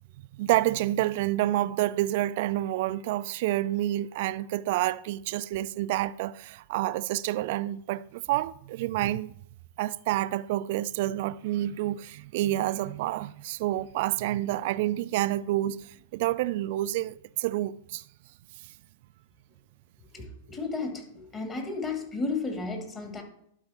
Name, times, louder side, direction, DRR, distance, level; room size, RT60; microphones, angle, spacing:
voice 1, 0.3-9.3 9.8-18.0, right 15 dB, 55° right, 0.4 m, -28 dB
voice 2, 20.1-23.2, left 3 dB, 25° left, 2.3 m, -33 dB
11.5 x 4.8 x 4.3 m
hypercardioid pair, 105°, 0 cm